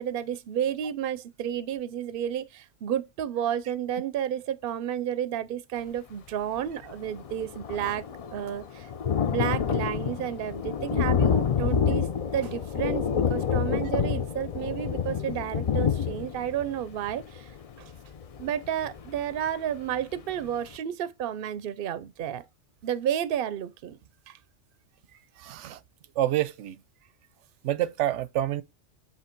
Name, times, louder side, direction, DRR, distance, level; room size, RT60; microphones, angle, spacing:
voice 1, 0.0-8.0 8.3-8.9 9.3-12.1 12.3-17.5 17.8-17.9 18.4-22.4 22.8-24.0 24.3-24.4, right 10 dB, 60° right, 0.6 m, -31 dB
Thunder, 6.6-6.7 6.9-19.5 20.0-20.1 20.4-20.5, left 7 dB, 65° left, 0.3 m, -28 dB
voice 2, 25.4-25.8 26.2-26.8 27.6-28.6, right 13 dB, 85° right, 0.9 m, -27 dB
7.7 x 3.0 x 4.4 m
omnidirectional pair, 1.2 m